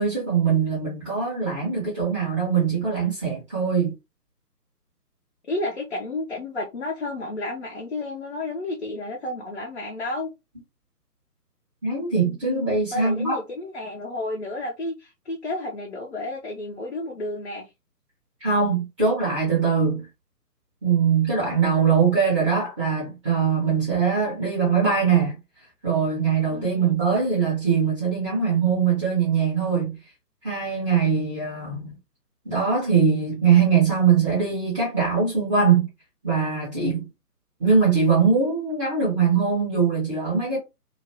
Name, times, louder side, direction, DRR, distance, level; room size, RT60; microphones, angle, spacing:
voice 1, 0.0-3.9 11.8-13.4 18.4-20.0 20.8-25.4 25.8-29.9 30.4-31.9 32.4-35.9 36.2-37.1 37.6-40.6, right 6 dB, 20° right, 1.1 m, -22 dB
voice 2, 5.5-10.3 12.9-17.7 26.5-26.9, left 2 dB, 45° left, 0.7 m, -31 dB
2.9 x 2.5 x 2.7 m
figure-of-eight pair, 145°, 47 cm